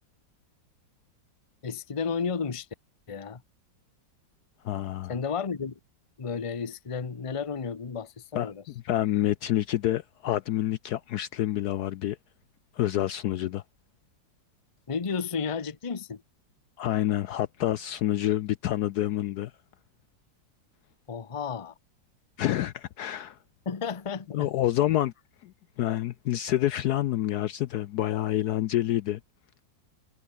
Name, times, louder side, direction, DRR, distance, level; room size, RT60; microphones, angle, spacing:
voice 1, 1.6-2.7 3.1-3.4 5.1-5.8 6.2-8.6 14.9-16.2 21.1-21.7 23.6-24.5, left 5 dB, 25° left, 0.8 m, -32 dB
voice 2, 4.6-5.2 8.3-12.2 12.7-13.6 16.8-19.5 22.4-23.4 24.3-25.1 25.4-29.2, left 13 dB, 70° left, 1.0 m, -28 dB
omnidirectional pair, 2.0 m